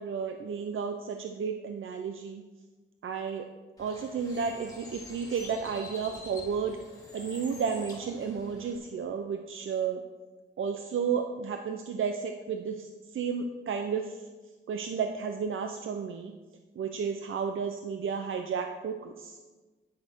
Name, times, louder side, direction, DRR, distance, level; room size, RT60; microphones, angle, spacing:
voice 1, 0.0-2.4 3.0-3.4 3.8-6.8 7.1-10.0 10.6-12.9 13.1-14.0 14.7-16.3 16.8-19.4, right 6 dB, 80° right, 5 dB, 0.7 m, -32 dB
Bird, 3.8-8.8, left 2 dB, 20° left, 2.4 m, -47 dB
9.9 x 9.9 x 4.5 m, 1.3 s
wide cardioid pair, 175°, 20 cm